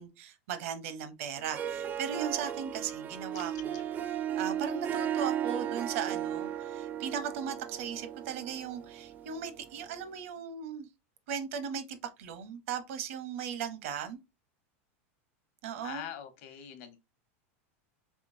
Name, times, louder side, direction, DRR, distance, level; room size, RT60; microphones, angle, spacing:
voice 1, 0.0-10.9 11.3-14.2 15.6-16.1, right 7 dB, 70° right, 0.8 m, -37 dB
Harp, 1.4-10.0, right 10 dB, 25° right, 0.4 m, -36 dB
sound 1, 3.3-3.9, left 12 dB, 45° left, 0.5 m, -51 dB
voice 2, 15.8-17.0, left 10 dB, 60° left, 1.0 m, -43 dB
3.6 x 3.3 x 2.6 m
supercardioid pair, 140°, 7 cm